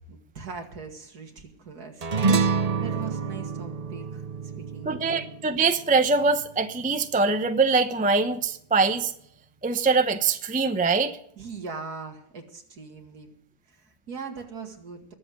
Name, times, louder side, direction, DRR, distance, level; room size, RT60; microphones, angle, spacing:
voice 1, 0.1-2.1 2.4-4.2 4.6-5.3 11.4-13.3 13.7-15.1, right 5 dB, 65° right, 3 dB, 2.6 m, -40 dB
sound 1, 2.0-6.7, right 5 dB, 85° right, 0.3 m, -27 dB
voice 2, 4.9-9.1 9.6-11.2, right 4 dB, 10° right, 8 dB, 0.5 m, -23 dB
21.0 x 7.9 x 6.5 m, 0.68 s
omnidirectional pair, 1.8 m